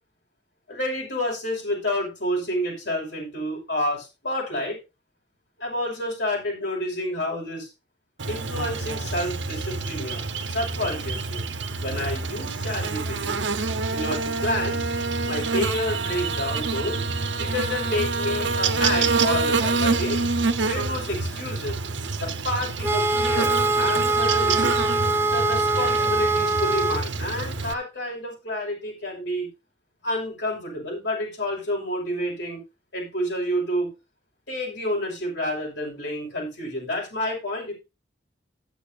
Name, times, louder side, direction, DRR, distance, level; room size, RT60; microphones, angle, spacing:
voice 1, 0.7-4.8 5.6-7.7 8.3-10.2 10.5-11.4 11.8-13.4 13.9-14.8 15.3-17.0 17.4-20.2 20.6-21.8 22.1-24.7 25.2-29.5 30.0-32.6 32.9-33.9 34.5-37.7, left 1 dB, 75° left, -1 dB, 5.7 m, -29 dB
Buzz, 8.2-27.7, right 4 dB, 85° right, 1.0 m, -27 dB
sound 1, 22.8-27.0, right 2 dB, 15° right, 0.5 m, -23 dB
15.5 x 8.7 x 2.7 m, 0.26 s
head